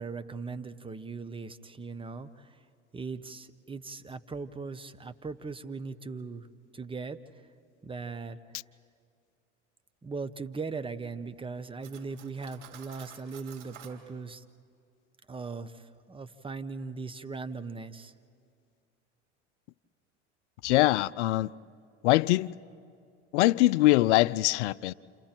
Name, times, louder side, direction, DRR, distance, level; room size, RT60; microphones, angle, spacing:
voice 1, 0.0-2.5 2.9-6.5 6.7-7.2 7.8-8.4 10.0-14.4 15.3-18.1, right 4 dB, 15° right, 1.0 m, -39 dB
Cutlery silverware, 11.8-14.0, right 10 dB, 75° right, 3.5 m, -50 dB
voice 2, 20.6-21.5 22.0-22.5 23.3-24.9, left 17 dB, 75° left, 0.5 m, -23 dB
29.5 x 28.5 x 4.5 m
hypercardioid pair, 85°, 35 cm